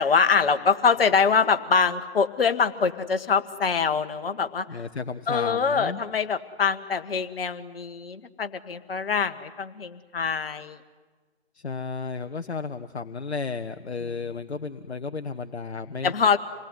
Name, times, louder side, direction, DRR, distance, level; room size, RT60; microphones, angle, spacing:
voice 1, 0.0-4.6 5.3-10.8 16.0-16.4, left 5 dB, 60° left, 9 dB, 1.6 m, -24 dB
voice 2, 4.7-6.0 11.5-16.1, left 4 dB, 75° left, 9 dB, 1.0 m, -33 dB
27.0 x 19.5 x 9.7 m, 1.4 s
figure-of-eight pair, 130°, 33 cm